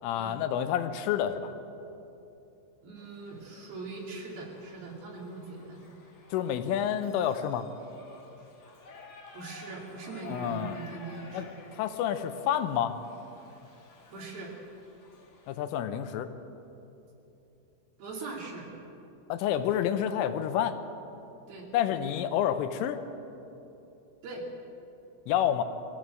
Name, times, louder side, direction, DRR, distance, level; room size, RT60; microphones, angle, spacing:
voice 1, 0.0-1.6 6.3-7.7 10.3-10.8 11.3-11.5 11.7-12.9 15.5-16.3 19.3-20.8 21.7-23.0 25.3-25.6, left 10 dB, 85° left, 9 dB, 3.4 m, -29 dB
voice 2, 2.8-5.9 9.3-11.6 14.1-14.5 18.0-18.7 21.5-21.7 24.2-24.5, right 3 dB, 55° right, -2 dB, 4.2 m, -41 dB
Shout / Livestock farm animals working animals, 3.0-15.5, left 3 dB, 45° left, 2.4 m, -53 dB
22.5 x 15.5 x 7.6 m, 2.9 s
omnidirectional pair, 5.6 m